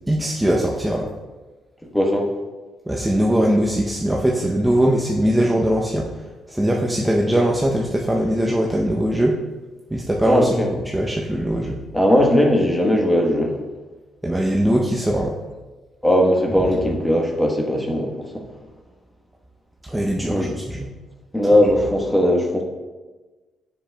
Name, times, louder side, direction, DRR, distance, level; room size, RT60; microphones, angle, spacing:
voice 1, 0.1-1.1 2.9-9.4 9.9-11.8 14.2-15.4 19.8-20.9, right 1 dB, 10° right, -2 dB, 0.6 m, -21 dB
voice 2, 1.9-2.3 10.2-10.7 11.9-13.5 16.0-18.4 20.2-20.5 21.3-22.6, equal, 10° left, 1 dB, 1.1 m, -18 dB
7.2 x 7.1 x 2.2 m, 1.3 s
cardioid pair, 90°, 0 cm